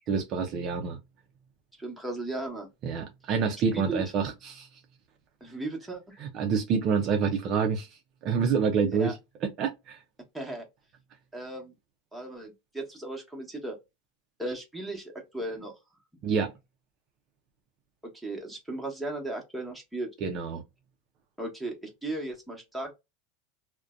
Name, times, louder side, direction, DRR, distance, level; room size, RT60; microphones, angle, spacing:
voice 1, 0.1-1.0 2.8-4.7 6.2-7.9 8.2-9.2 9.4-10.0 16.2-16.5 20.2-20.6, right 6 dB, 45° right, 0.5 m, -27 dB
voice 2, 1.8-2.7 3.7-4.0 5.4-6.2 8.9-9.1 10.3-10.6 11.3-11.7 12.1-13.8 14.4-15.7 18.1-20.1 21.4-22.9, right 2 dB, 5° right, 1.0 m, -36 dB
2.5 x 2.1 x 2.3 m
supercardioid pair, 125°, 0 cm